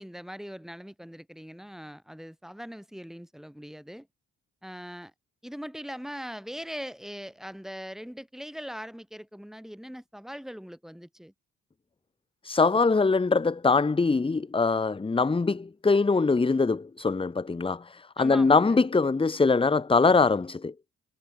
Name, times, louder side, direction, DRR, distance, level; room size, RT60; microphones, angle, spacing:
voice 1, 0.0-4.1 4.6-5.1 5.4-11.3 18.2-18.8, equal, ahead, 7.0 m, -41 dB
voice 2, 12.4-20.7, left 4 dB, 20° left, 1.0 m, -23 dB
cardioid pair, 90°, 30 cm